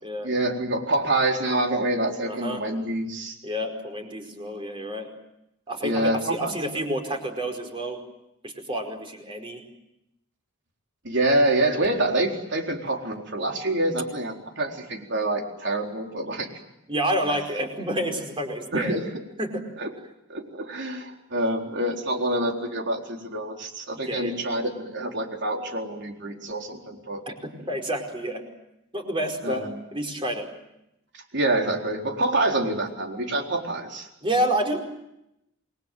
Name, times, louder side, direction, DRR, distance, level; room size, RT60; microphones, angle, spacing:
voice 1, 0.2-3.4 5.8-6.8 11.0-16.6 18.7-19.0 19.8-19.9 20.3-27.2 29.4-29.6 31.3-34.1, right 1 dB, 55° right, 2 dB, 4.2 m, -26 dB
voice 2, 2.2-2.6 3.4-5.1 5.7-8.0 8.4-9.6 16.9-19.0 19.4-19.6 23.9-24.3 27.3-28.4 28.9-29.6 29.9-30.5 34.2-34.8, right 1 dB, 25° right, 4 dB, 4.9 m, -29 dB
28.0 x 21.5 x 9.2 m, 0.87 s
head